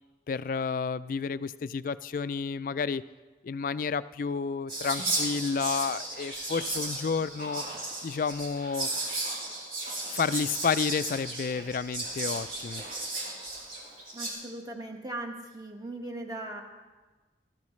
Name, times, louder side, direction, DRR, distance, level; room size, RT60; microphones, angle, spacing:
voice 1, 0.3-3.0 3.4-7.6 8.0-8.9 10.1-12.8, left 5 dB, 50° left, 15 dB, 0.3 m, -30 dB
Whispering, 4.7-14.3, right 2 dB, 50° right, 4.4 m, -35 dB
voice 2, 14.1-16.6, right 1 dB, 20° right, 1 dB, 1.5 m, -39 dB
20.5 x 13.5 x 3.2 m, 1.3 s
head